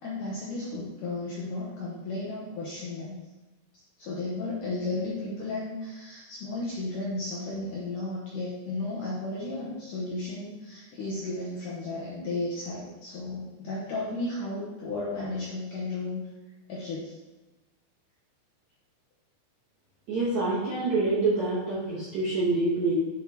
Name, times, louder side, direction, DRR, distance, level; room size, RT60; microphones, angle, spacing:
voice 1, 0.0-3.2 4.0-16.2 16.7-17.2, left 2 dB, 75° left, -6 dB, 2.0 m, -34 dB
voice 2, 20.1-22.9, right 3 dB, 70° right, -7 dB, 1.7 m, -26 dB
8.5 x 7.2 x 2.9 m, 1.1 s
omnidirectional pair, 5.3 m